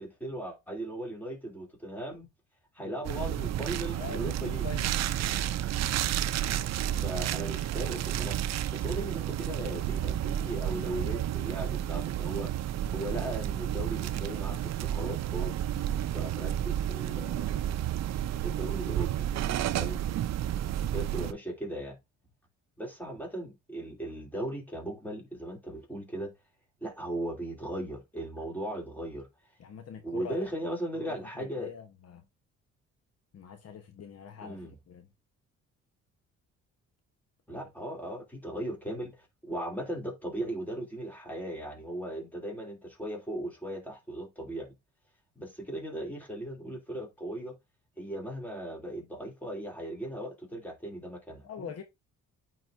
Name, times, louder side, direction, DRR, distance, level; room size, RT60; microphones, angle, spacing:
voice 1, 0.0-2.3 2.7-4.7 7.0-8.4 8.7-12.5 12.9-15.5 16.1-18.0 18.4-19.3 19.7-20.0 20.9-22.0 22.8-26.3 26.8-29.3 30.0-31.7 34.4-34.7 37.5-39.2 39.4-44.7 45.4-47.5 48.0-51.7, right 1 dB, 5° left, 2.8 m, -38 dB
sound 1, 3.0-21.3, right 11 dB, 60° right, 0.5 m, -31 dB
voice 2, 3.9-4.9 29.6-30.5 30.9-32.2 33.3-35.1 37.5-37.7 51.4-51.8, left 6 dB, 55° left, 1.0 m, -44 dB
8.9 x 4.1 x 2.6 m
cardioid pair, 90°, 30 cm